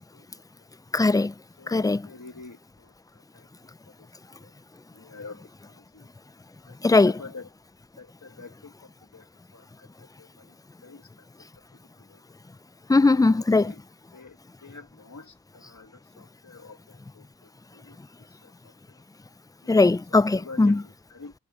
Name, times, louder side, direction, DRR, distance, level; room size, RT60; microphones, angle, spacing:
voice 1, 0.9-1.3 1.7-2.1 6.8-7.2 12.9-13.7 19.7-20.8, left 3 dB, 10° left, 0.4 m, -20 dB
voice 2, 1.6-4.1 4.4-4.6 4.9-6.1 6.6-7.5 8.0-11.5 11.7-12.2 13.1-13.2 13.5-13.8 14.1-19.0 19.6-19.7 20.1-21.3, left 4 dB, 70° left, 2.2 m, -48 dB
wide cardioid pair, 40°, 31 cm